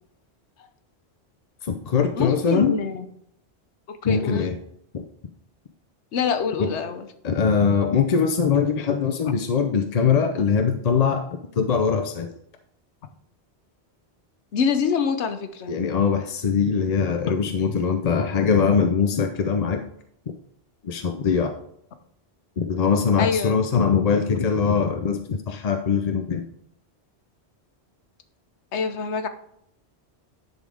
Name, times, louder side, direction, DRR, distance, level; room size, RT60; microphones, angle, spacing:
voice 1, 1.6-2.7 4.0-4.6 4.9-5.0 6.6-6.7 7.2-11.2 11.6-12.3 15.7-19.8 20.8-21.5 22.6-26.4, left 6 dB, 45° left, 6 dB, 0.5 m, -22 dB
voice 2, 2.2-3.1 3.9-4.5 6.1-7.1 14.5-15.7 23.2-23.6 28.7-29.3, left 6 dB, 90° left, 8 dB, 1.1 m, -25 dB
10.5 x 4.0 x 4.9 m, 0.72 s
omnidirectional pair, 1.1 m